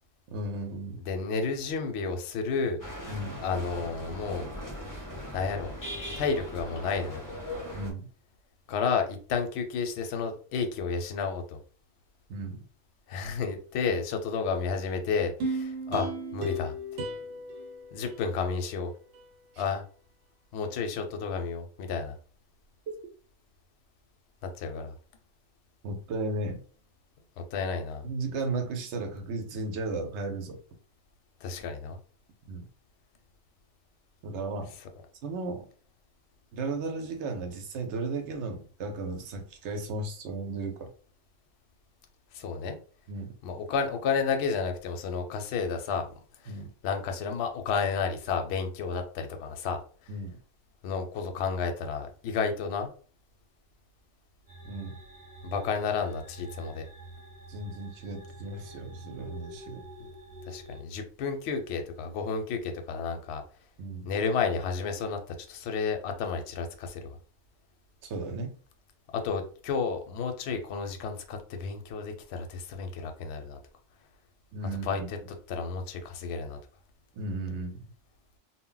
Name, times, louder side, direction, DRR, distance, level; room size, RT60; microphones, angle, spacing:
voice 1, 0.3-1.0 3.1-3.4 7.7-8.1 12.3-12.6 25.8-26.6 28.0-30.6 32.5-32.6 34.2-34.7 35.2-35.7 36.5-40.9 43.1-43.4 46.5-46.7 50.1-50.4 54.6-55.0 57.5-59.8 63.8-64.1 68.0-68.5 74.5-75.1 77.1-77.8, right 3 dB, 70° right, 4 dB, 0.8 m, -35 dB
voice 2, 1.1-2.8 3.4-4.5 5.3-5.7 6.2-7.2 8.7-11.6 13.1-16.7 17.9-18.9 19.6-19.8 20.5-22.2 24.6-24.9 27.4-28.1 31.4-32.0 42.3-42.8 43.4-46.1 46.4-46.6 46.8-50.1 50.8-52.9 55.4-56.8 60.5-63.4 64.1-67.2 69.1-73.6 74.7-75.2 75.5-76.6, left 5 dB, 65° left, 5 dB, 0.7 m, -31 dB
sound 1, 2.8-7.9, left 1 dB, 30° left, 0.3 m, -39 dB
sound 2, 15.4-18.7 19.1-19.2, right 1 dB, 90° right, 1.0 m, -35 dB
sound 3, 54.5-60.8, right 1 dB, 35° right, 0.6 m, -47 dB
2.1 x 2.1 x 3.7 m, 0.41 s
omnidirectional pair, 1.3 m